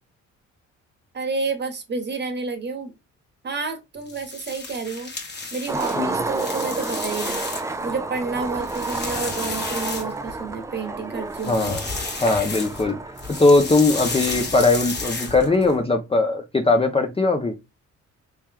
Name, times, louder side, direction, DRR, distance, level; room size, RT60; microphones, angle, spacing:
voice 1, 1.1-2.9 3.4-5.1 5.5-7.4 7.8-11.7, right 4 dB, 35° right, 1.2 m, -30 dB
sound 1, 4.0-7.9 8.3-10.5 11.3-12.9 13.2-15.7, left 4 dB, 35° left, 1.3 m, -32 dB
Skateboard, 5.7-15.8, right 3 dB, 10° right, 0.4 m, -31 dB
voice 2, 11.5-11.9 12.2-13.0 13.3-17.6, left 3 dB, 20° left, 0.7 m, -19 dB
3.1 x 3.1 x 3.5 m
cardioid pair, 90°, 30 cm